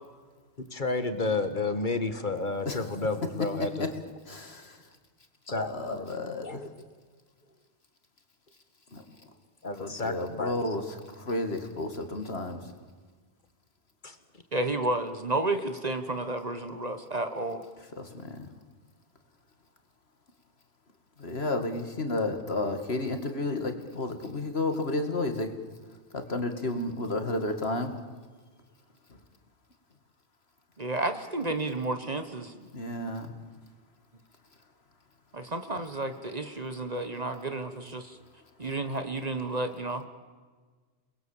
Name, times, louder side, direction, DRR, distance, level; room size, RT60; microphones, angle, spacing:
voice 1, 0.7-3.9 5.5-6.1 6.4-6.7 9.6-10.5 14.0-14.2, left 3 dB, 45° left, 9 dB, 1.9 m, -31 dB
voice 2, 3.6-3.9 4.3-4.9 5.5-6.7 8.9-9.3 9.8-12.7 18.0-18.5 21.2-25.5 26.1-27.9 29.1-29.2 32.6-33.4 37.3-37.5 38.6-38.7, left 2 dB, 65° left, 6 dB, 2.5 m, -32 dB
voice 3, 14.5-17.6 30.8-32.5 35.3-38.2 38.6-40.1, right 2 dB, 35° right, 8 dB, 1.5 m, -31 dB
29.5 x 21.0 x 7.4 m, 1.5 s
omnidirectional pair, 1.1 m